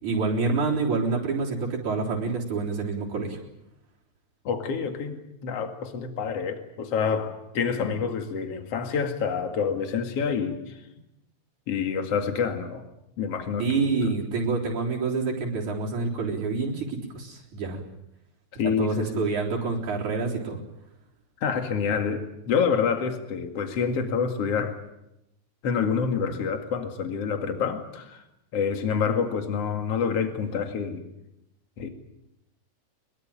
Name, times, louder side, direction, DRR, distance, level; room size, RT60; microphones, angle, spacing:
voice 1, 0.0-3.4 13.6-17.8 18.6-20.6, right 4 dB, 85° right, -2 dB, 5.2 m, -27 dB
voice 2, 4.4-10.8 11.7-12.8 13.2-14.1 18.6-19.2 21.4-24.8 25.6-28.2 28.5-31.1 31.8-31.9, left 6 dB, 55° left, 6 dB, 3.0 m, -27 dB
22.5 x 22.0 x 9.0 m, 0.87 s
omnidirectional pair, 3.3 m